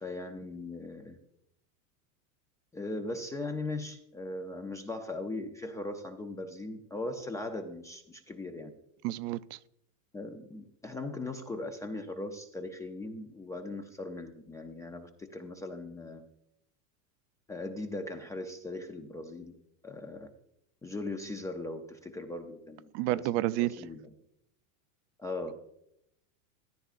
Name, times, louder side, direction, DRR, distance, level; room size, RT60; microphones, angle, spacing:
voice 1, 0.0-1.2 2.7-8.7 10.1-16.2 17.5-19.5 19.8-20.3 20.8-23.3 23.6-24.0 25.2-25.5, left 2 dB, 10° left, 5 dB, 0.3 m, -39 dB
voice 2, 9.0-9.6 22.9-23.8, right 16 dB, 55° right, 16 dB, 0.5 m, -30 dB
14.0 x 11.5 x 2.4 m, 0.77 s
supercardioid pair, 145°, 42 cm